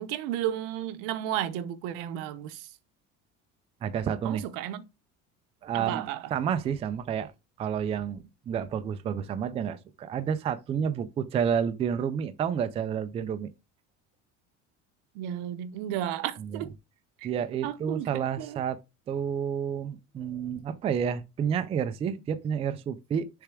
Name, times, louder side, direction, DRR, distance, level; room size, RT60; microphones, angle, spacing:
voice 1, 0.0-2.7 4.2-4.8 5.7-6.3 15.1-16.7 17.2-17.3 17.6-18.6, right 11 dB, 80° right, 1.0 m, -33 dB
voice 2, 3.8-4.4 5.6-7.3 7.6-13.5 16.5-16.6 17.2-18.8 19.1-23.3, right 8 dB, 20° right, 0.3 m, -30 dB
6.7 x 3.4 x 4.8 m
cardioid pair, 175°, 33 cm